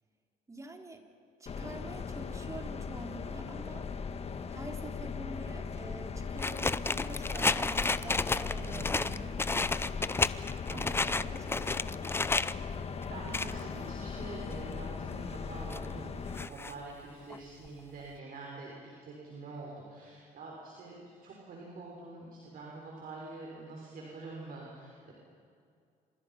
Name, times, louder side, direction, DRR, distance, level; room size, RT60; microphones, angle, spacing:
voice 1, 0.5-1.1 1.4-3.9 4.5-9.4 10.7-12.1, right 2 dB, 20° right, 3 dB, 3.4 m, -46 dB
sound 1, 1.5-16.5, left 5 dB, 35° left, 1.6 m, -39 dB
sound 2, 6.4-12.5 13.0-13.6 14.1-14.2 14.6-14.7 15.3-15.9 16.4-16.7 17.3-17.4 17.7-17.8 18.0-18.1, left 3 dB, 15° left, 0.6 m, -31 dB
voice 2, 8.6-9.1 10.7-11.2 12.6-12.8 13.1-25.1, right 3 dB, 60° right, -3 dB, 6.2 m, -46 dB
29.0 x 26.0 x 5.9 m, 2.3 s
cardioid pair, 110°, 17 cm